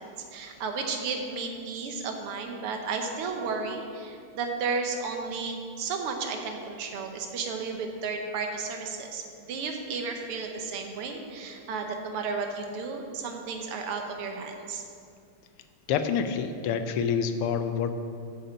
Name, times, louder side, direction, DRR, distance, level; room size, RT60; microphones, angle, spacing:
voice 1, 0.0-14.8, right 4 dB, 85° right, 3 dB, 1.9 m, -33 dB
voice 2, 15.9-17.9, left 7 dB, 85° left, 9 dB, 1.6 m, -27 dB
7.5 x 7.0 x 7.1 m, 2.4 s
omnidirectional pair, 2.4 m